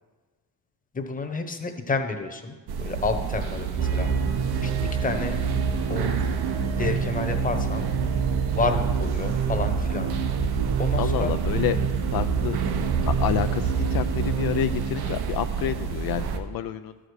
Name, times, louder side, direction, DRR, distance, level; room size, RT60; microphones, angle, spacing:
voice 1, 0.9-4.1 4.6-4.7 5.0-5.4 5.9-6.1 6.8-7.9 8.5-10.1 10.8-11.3, left 3 dB, 20° left, 6 dB, 1.0 m, -29 dB
sound 1, 2.7-16.4, right 6 dB, 80° right, 0.9 m, -29 dB
sound 2, 3.8-15.7, right 6 dB, 50° right, 1.2 m, -28 dB
voice 2, 11.0-11.8 12.1-12.6 13.1-17.0, left 11 dB, 70° left, 10 dB, 0.5 m, -29 dB
13.0 x 5.0 x 6.4 m, 1.3 s
cardioid pair, 115°, 38 cm